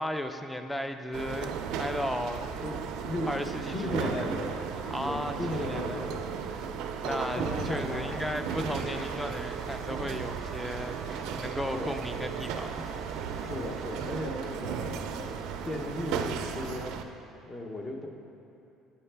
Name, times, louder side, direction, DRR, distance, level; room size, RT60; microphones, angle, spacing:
voice 1, 0.0-2.5 3.3-4.2 4.9-6.0 6.5-6.8 7.0-12.9, left 1 dB, 5° left, 7 dB, 0.3 m, -35 dB
sound 1, 1.1-17.0, right 7 dB, 75° right, 0.4 m, -35 dB
voice 2, 2.6-3.3 3.6-4.6 5.0-6.2 7.0-8.2 11.7-11.9 13.4-15.4 15.6-17.0 17.5-18.1, left 1 dB, 30° left, 2 dB, 0.7 m, -36 dB
Hiss / Fire / Tick, 6.6-16.0, left 1 dB, 75° left, 1.0 m, -50 dB
8.1 x 5.4 x 3.3 m, 2.7 s
cardioid pair, 120°, 0 cm